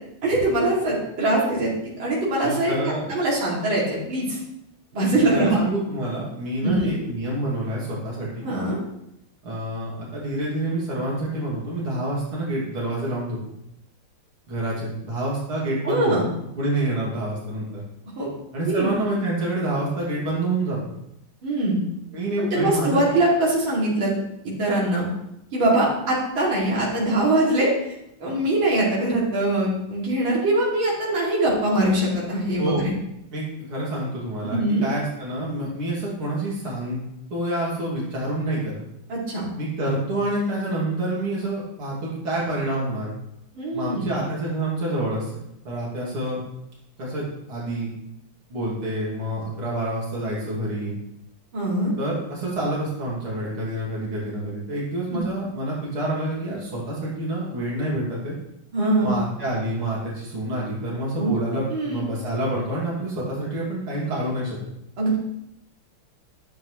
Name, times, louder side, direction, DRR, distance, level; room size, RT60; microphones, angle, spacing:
voice 1, 0.2-1.7 2.0-4.4 4.9-5.6 6.6-6.9 8.4-8.8 15.8-16.2 18.2-18.3 18.7-18.9 21.4-21.8 22.4-24.1 24.6-25.1 25.5-27.7 28.2-32.9 34.4-34.9 39.1-39.4 43.6-44.1 51.5-51.9 55.1-55.2 58.7-59.2 61.2-61.3 61.7-62.1 65.0-65.2, right 1 dB, 65° right, -6 dB, 3.5 m, -22 dB
voice 2, 2.4-3.1 5.1-8.5 9.4-13.4 14.5-16.2 16.5-17.8 18.5-20.9 22.1-23.1 32.6-32.8 33.3-37.0 37.3-38.8 39.6-43.1 43.7-45.3 45.6-46.4 47.0-47.2 47.5-47.9 48.5-51.0 52.0-58.3 59.0-64.6, right 1 dB, 85° right, -6 dB, 3.4 m, -27 dB
13.0 x 7.5 x 3.2 m, 0.80 s
omnidirectional pair, 2.3 m